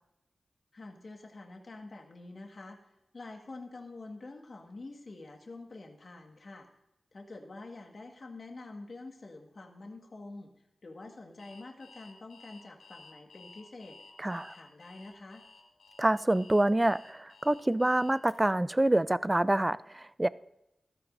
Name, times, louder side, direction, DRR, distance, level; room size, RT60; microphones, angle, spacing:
voice 1, 0.7-2.8 3.1-6.7 7.1-14.0 14.3-15.4, left 2 dB, 60° left, 1.7 m, -47 dB
Alarm, 11.4-18.3, left 4 dB, 85° left, 2.2 m, -55 dB
voice 2, 14.2-14.5 16.0-20.3, right 1 dB, 20° right, 0.5 m, -27 dB
15.5 x 13.0 x 2.7 m
cardioid pair, 45°, 0 cm